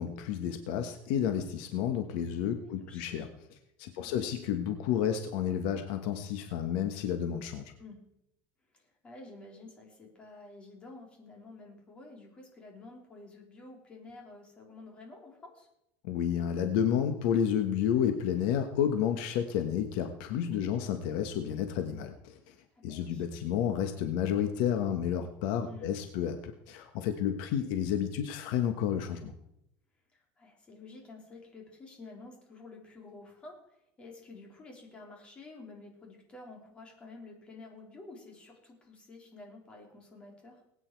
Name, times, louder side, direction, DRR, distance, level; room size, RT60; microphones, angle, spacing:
voice 1, 0.0-3.3 3.8-7.6 16.0-22.5 22.8-29.3, left 9 dB, 70° left, 7 dB, 1.3 m, -31 dB
voice 2, 2.7-3.3 4.0-4.5 7.8-8.0 8.7-15.7 20.5-20.9 22.7-23.3 25.6-25.9 30.1-40.6, left 3 dB, 20° left, 1 dB, 3.5 m, -50 dB
20.5 x 9.1 x 4.6 m, 0.81 s
cardioid pair, 165°, 5 cm